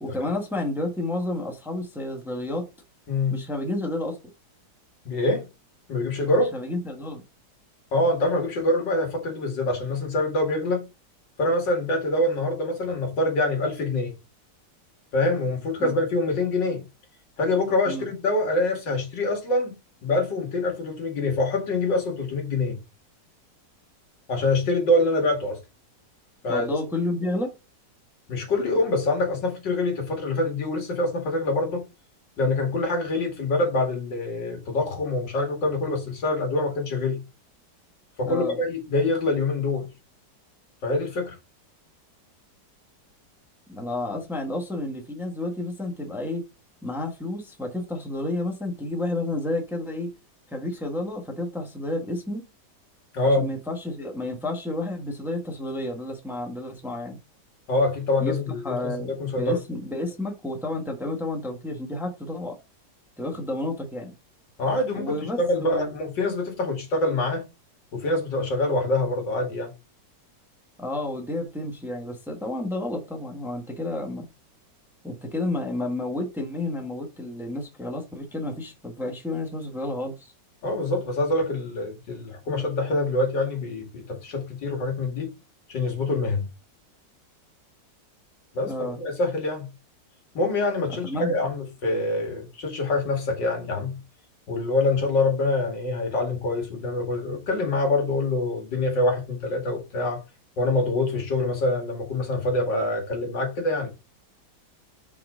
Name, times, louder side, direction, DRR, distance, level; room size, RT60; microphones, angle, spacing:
voice 1, 0.0-2.7 3.3-4.2 6.5-7.2 15.8-15.9 17.9-18.1 26.5-27.5 38.2-38.5 43.7-46.4 46.8-50.1 50.5-52.4 53.2-57.2 58.2-58.3 58.6-62.6 63.2-64.1 64.9-65.9 70.8-74.3 75.0-80.3 88.7-89.0 90.9-91.4, left 2 dB, ahead, 1.2 m, -31 dB
voice 2, 3.1-3.4 5.0-5.4 5.9-6.5 7.9-10.9 11.4-14.1 15.1-16.8 17.4-19.8 20.0-22.8 24.3-25.6 26.4-26.7 28.3-31.8 32.4-37.2 38.2-39.9 40.8-41.4 53.1-53.4 57.7-59.6 64.6-67.5 67.9-69.7 80.6-85.3 85.7-86.4 88.5-89.7 90.3-94.0 94.5-100.2 100.6-103.9, left 2 dB, 85° left, 2.7 m, -25 dB
5.9 x 4.9 x 3.7 m
omnidirectional pair, 1.9 m